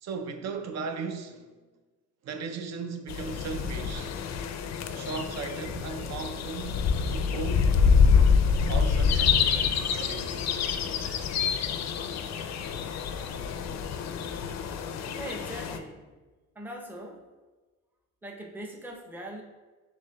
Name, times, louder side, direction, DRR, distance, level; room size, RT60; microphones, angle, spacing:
voice 1, 0.0-1.5 2.2-4.1 4.9-7.8 8.7-10.5, right 5 dB, 55° right, 0.6 m, -37 dB
sound 1, 3.1-15.8, left 6 dB, 55° left, 0.4 m, -26 dB
voice 2, 15.1-16.1 16.5-17.3 18.2-19.4, right 1 dB, 5° right, 0.6 m, -41 dB
6.4 x 2.9 x 2.2 m
cardioid pair, 95°, 33 cm